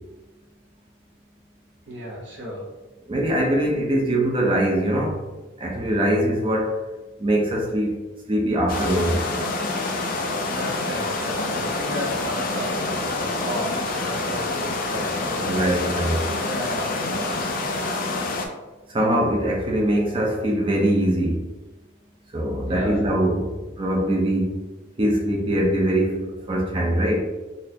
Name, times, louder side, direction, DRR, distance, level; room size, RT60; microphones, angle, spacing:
voice 1, 1.9-2.7 10.5-17.6 22.6-23.1, equal, 60° right, -3 dB, 0.9 m, -34 dB
voice 2, 3.1-5.2 5.6-6.8 7.2-8.0 8.3-9.2 15.4-16.3 18.9-21.4 22.3-23.5 23.8-24.5 25.0-27.2, right 1 dB, 25° right, -1 dB, 0.5 m, -22 dB
sound 1, 8.7-18.5, left 2 dB, 45° left, 0.4 m, -27 dB
4.0 x 2.4 x 2.7 m, 1.2 s
head